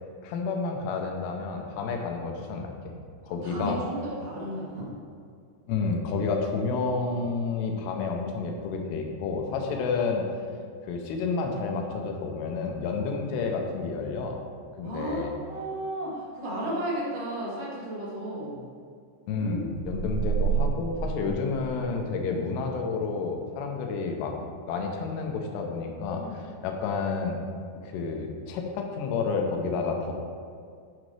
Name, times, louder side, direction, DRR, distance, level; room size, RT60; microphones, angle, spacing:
voice 1, 0.2-2.7 3.3-3.8 5.7-10.3 10.9-14.4 14.8-15.3 19.3-24.3 24.7-27.4 27.8-30.1, left 4 dB, 80° left, 2 dB, 2.8 m, -30 dB
voice 2, 3.3-4.9 9.6-9.8 13.0-13.1 14.8-18.6 19.3-19.7 26.2-26.3, right 1 dB, 55° right, -7 dB, 1.3 m, -34 dB
sound 1, 19.8-22.2, right 7 dB, 75° right, 2.6 m, -29 dB
11.5 x 5.0 x 3.3 m, 2.2 s
omnidirectional pair, 5.1 m